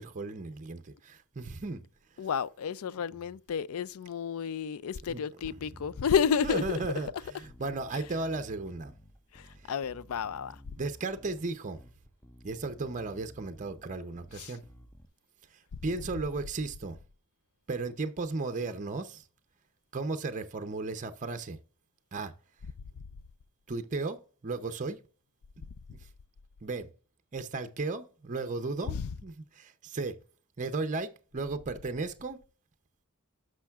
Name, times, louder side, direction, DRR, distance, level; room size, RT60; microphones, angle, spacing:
voice 1, 0.0-1.8 5.1-5.2 6.4-8.9 9.6-9.7 10.8-11.8 12.4-14.6 15.5-17.0 17.7-19.2 19.9-21.6 22.1-22.3 23.7-25.0 26.6-26.9 27.3-30.2 30.6-32.4, right 3 dB, 35° right, 0.6 m, -35 dB
voice 2, 2.2-6.8 7.9-8.0 9.3-10.6 14.3-14.6 28.9-29.1, left 7 dB, 70° left, 0.4 m, -31 dB
Bass guitar, 5.5-15.1, left 1 dB, 10° left, 0.5 m, -54 dB
10.0 x 6.3 x 2.4 m
head